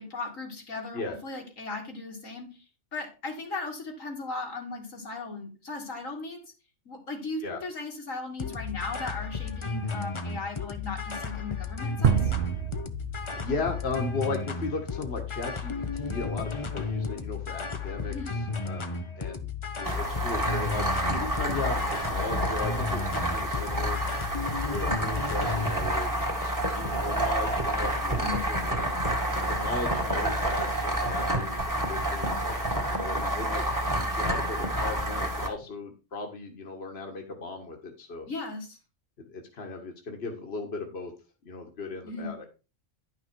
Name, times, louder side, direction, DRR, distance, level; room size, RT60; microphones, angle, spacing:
voice 1, 0.0-2.6 2.9-6.4 6.9-12.3 18.1-18.3 28.1-28.4 38.3-38.8 42.0-42.3, left 3 dB, 85° left, 1 dB, 2.8 m, -37 dB
sound 1, 8.4-25.7, left 4 dB, 25° left, 0.8 m, -34 dB
sound 2, 12.0-14.5, right 9 dB, 55° right, 0.8 m, -28 dB
voice 2, 13.4-19.5 19.8-20.9 21.1-24.0 24.6-29.0 29.5-32.5 32.9-33.6 33.9-38.3 39.2-41.1 41.4-42.4, left 3 dB, 50° left, 2 dB, 1.8 m, -36 dB
sound 3, 19.8-35.5, right 1 dB, 15° right, 1.9 m, -29 dB
11.0 x 5.9 x 4.6 m, 0.32 s
omnidirectional pair, 1.3 m